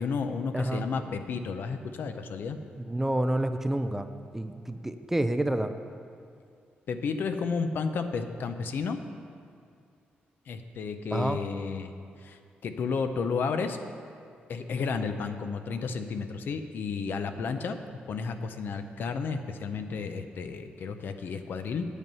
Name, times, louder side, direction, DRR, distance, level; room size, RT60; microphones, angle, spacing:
voice 1, 0.0-2.6 6.9-9.0 10.5-11.9 12.2-13.8 14.5-17.8 18.1-21.8, left 5 dB, 65° left, 8 dB, 0.6 m, -32 dB
voice 2, 0.5-0.8 2.8-4.1 4.3-5.7 11.1-11.4, right 1 dB, 10° right, 9 dB, 0.4 m, -28 dB
9.1 x 8.2 x 5.5 m, 2.3 s
cardioid pair, 125°, 4 cm